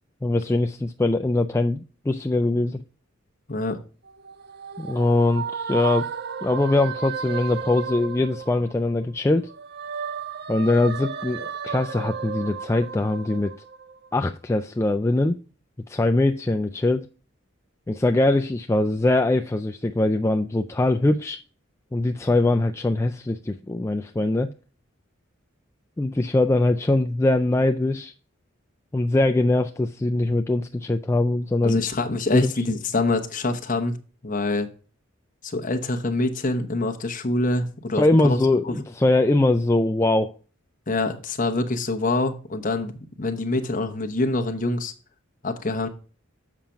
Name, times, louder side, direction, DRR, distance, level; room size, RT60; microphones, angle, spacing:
voice 1, 0.2-2.8 4.8-6.1 6.4-9.5 10.5-13.5 14.1-15.4 15.9-17.1 17.9-21.4 21.9-24.5 26.0-28.1 28.9-31.8 32.3-32.5 37.9-40.4, left 2 dB, 15° left, 0.3 m, -22 dB
sound 1, 4.1-9.0 9.4-14.2, right 6 dB, 50° right, 0.6 m, -33 dB
voice 2, 31.6-34.0 34.2-34.7 35.4-38.4 38.6-38.7 40.9-42.9 43.2-44.9 45.4-45.9, left 2 dB, 40° left, 1.0 m, -25 dB
7.4 x 5.8 x 5.0 m
head